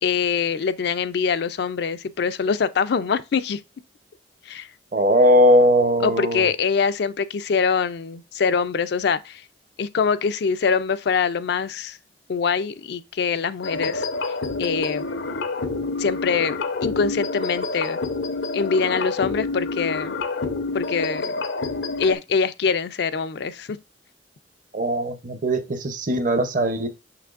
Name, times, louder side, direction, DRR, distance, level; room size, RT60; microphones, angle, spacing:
voice 1, 0.0-3.6 4.5-4.7 6.0-9.4 9.8-12.0 12.3-14.1 14.6-15.1 16.0-18.0 18.5-20.2 20.7-21.3 22.0-23.8, left 5 dB, 60° left, 0.4 m, -24 dB
voice 2, 4.9-6.5 24.7-26.9, equal, 45° right, 0.8 m, -19 dB
sound 1, 13.6-22.1, left 3 dB, 85° left, 0.8 m, -28 dB
6.4 x 5.9 x 2.5 m
head